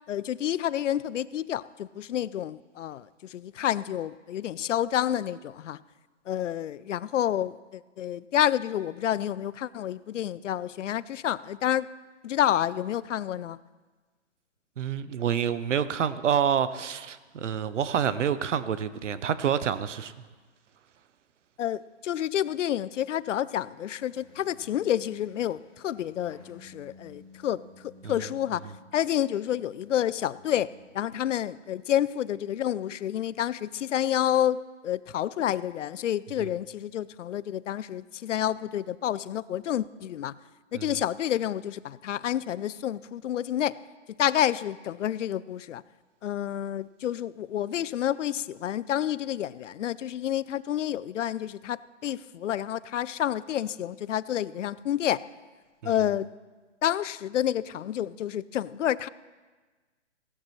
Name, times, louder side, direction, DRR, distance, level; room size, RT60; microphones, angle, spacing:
voice 1, 0.1-5.8 6.3-11.9 12.2-13.6 21.6-40.3 40.7-43.8 44.2-45.8 46.2-55.2 55.8-56.3 56.8-59.1, left 11 dB, 75° left, 19 dB, 0.5 m, -29 dB
voice 2, 14.8-20.1 28.0-28.1 36.4-36.5 40.7-41.0 55.8-55.9, right 8 dB, 70° right, 14 dB, 0.8 m, -28 dB
sound 1, 23.9-31.1, left 2 dB, 10° left, 1.2 m, -54 dB
17.0 x 11.0 x 3.2 m, 1.3 s
hypercardioid pair, 155°, 37 cm